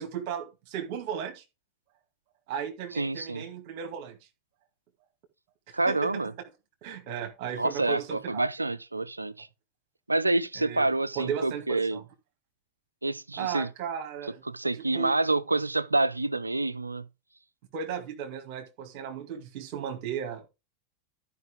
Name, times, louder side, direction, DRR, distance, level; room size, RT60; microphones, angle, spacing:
voice 1, 0.0-1.4 2.5-4.2 5.7-6.1 6.8-8.5 10.6-10.9 11.2-12.0 13.4-14.4 14.7-15.1 17.7-20.5, right 8 dB, 50° right, 2.0 m, -35 dB
voice 2, 3.0-3.4 5.7-6.3 7.5-9.5 10.1-12.0 13.0-13.7 14.5-17.1, right 2 dB, 90° right, 0.5 m, -27 dB
13.0 x 5.2 x 3.6 m
figure-of-eight pair, 85°, 0 cm